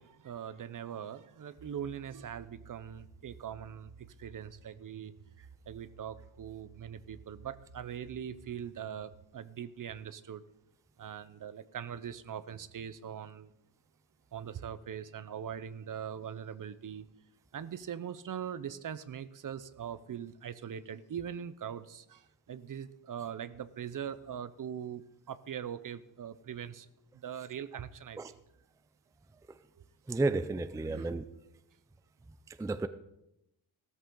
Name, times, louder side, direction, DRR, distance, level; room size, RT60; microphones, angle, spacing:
voice 1, 0.0-5.1 5.7-10.4 11.0-13.5 14.3-17.1 17.5-26.9 27.1-28.4 29.8-29.9 30.8-31.1, right 8 dB, 40° right, 15 dB, 0.7 m, -42 dB
sound 1, 1.6-9.3, right 6 dB, 70° right, 1.4 m, -55 dB
voice 2, 30.1-31.2 32.5-32.9, right 3 dB, 5° right, 12 dB, 0.4 m, -32 dB
16.0 x 13.5 x 3.8 m, 0.86 s
wide cardioid pair, 135°, 48 cm